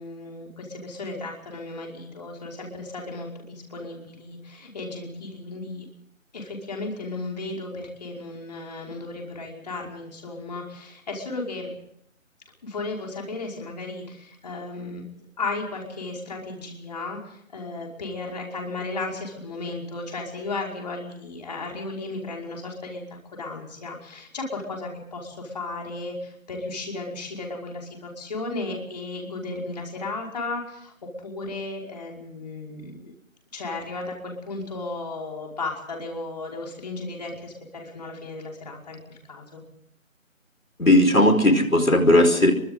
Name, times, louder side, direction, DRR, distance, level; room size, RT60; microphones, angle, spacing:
voice 1, 0.0-5.9 6.3-11.7 12.6-15.1 15.4-30.9 31.2-33.1 33.5-39.6, left 3 dB, 30° left, 0 dB, 5.3 m, -35 dB
voice 2, 40.8-42.5, left 1 dB, 80° left, 6 dB, 4.9 m, -17 dB
30.0 x 24.0 x 3.9 m, 0.73 s
figure-of-eight pair, 160°, 40 cm